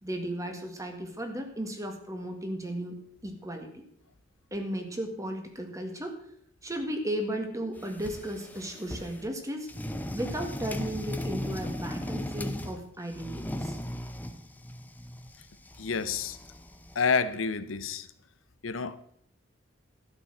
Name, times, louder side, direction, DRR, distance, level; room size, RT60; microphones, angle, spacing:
voice 1, 0.0-3.8 4.5-6.2 6.6-9.7 10.1-13.8, right 1 dB, 15° right, 1.9 m, -35 dB
sound 1, 7.8-9.3 9.7-12.8 13.1-17.0, left 1 dB, 10° left, 0.8 m, -37 dB
voice 2, 15.8-16.4 16.9-18.1 18.6-19.0, left 5 dB, 80° left, 0.8 m, -28 dB
12.5 x 6.9 x 7.7 m
head